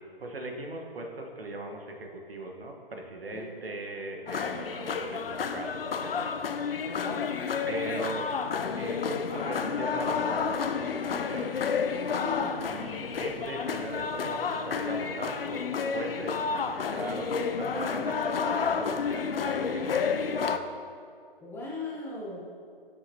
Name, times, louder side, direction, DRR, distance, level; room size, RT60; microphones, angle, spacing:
voice 1, 0.2-6.3 7.7-8.3 8.7-11.5 12.5-20.8, right 1 dB, 75° right, 2 dB, 1.5 m, -39 dB
sound 1, 4.3-20.6, left 6 dB, 70° left, 0.7 m, -30 dB
voice 2, 7.0-7.4 12.1-12.6 21.4-22.4, left 3 dB, 5° left, -4 dB, 0.8 m, -38 dB
15.0 x 7.0 x 3.0 m, 2.3 s
figure-of-eight pair, 135°, 29 cm